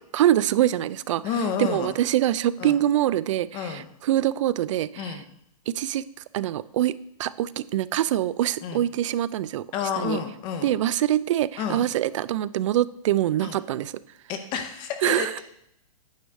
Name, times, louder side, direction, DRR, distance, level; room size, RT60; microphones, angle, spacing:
voice 1, 0.1-1.2 1.6-5.2 5.7-6.1 6.3-9.6 10.0-10.2 10.6-14.0 15.0-15.3, right 12 dB, 60° right, 18 dB, 0.4 m, -24 dB
voice 2, 1.2-1.9 2.6-2.8 3.5-3.9 5.0-5.3 8.6-8.8 9.7-10.7 11.6-11.8 13.4-13.6 14.3-15.4, left 7 dB, 25° left, 7 dB, 0.7 m, -30 dB
9.4 x 3.2 x 6.4 m, 0.73 s
hypercardioid pair, 150°, 18 cm